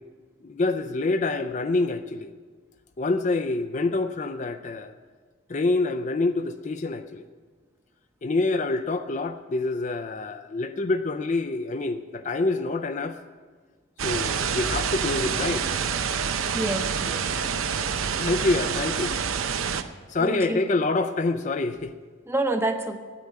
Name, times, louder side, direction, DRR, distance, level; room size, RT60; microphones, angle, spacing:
voice 1, 0.4-2.3 3.0-4.9 5.5-7.3 8.2-13.2 14.0-15.6 18.2-19.2 20.1-21.9, left 3 dB, 35° left, 8 dB, 0.4 m, -26 dB
sound 1, 14.0-19.8, right 6 dB, 80° right, 0.7 m, -27 dB
voice 2, 16.5-17.3 20.2-20.7 22.3-23.0, right 2 dB, 10° right, 6 dB, 0.8 m, -28 dB
9.8 x 8.6 x 9.8 m, 1.5 s
head